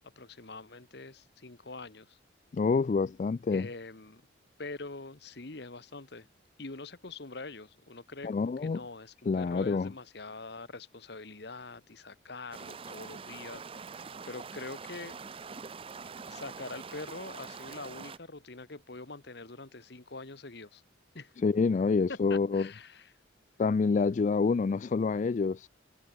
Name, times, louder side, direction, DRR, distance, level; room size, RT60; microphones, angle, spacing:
voice 1, 0.0-2.2 3.5-4.2 4.6-6.3 6.6-15.2 16.2-20.8 21.1-21.3 22.1-23.1, left 3 dB, 60° left, 1.4 m, -44 dB
voice 2, 2.5-3.7 8.2-8.8 9.3-9.9 21.4-22.7 23.6-25.7, left 4 dB, 40° left, 0.3 m, -27 dB
sound 1, 12.5-18.2, right 5 dB, 30° right, 0.5 m, -44 dB
head